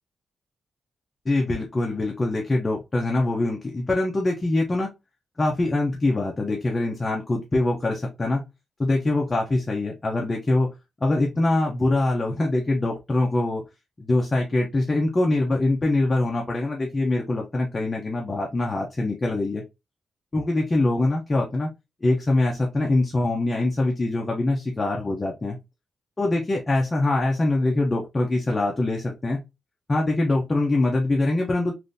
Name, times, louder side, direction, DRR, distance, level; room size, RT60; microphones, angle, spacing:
voice 1, 1.3-4.9 5.4-8.4 8.8-10.7 11.0-13.6 14.0-19.6 20.3-21.7 22.0-25.6 26.2-29.4 29.9-31.7, left 2 dB, 20° left, -1 dB, 0.6 m, -23 dB
3.6 x 2.5 x 2.5 m, 0.23 s
wide cardioid pair, 180°, 0 cm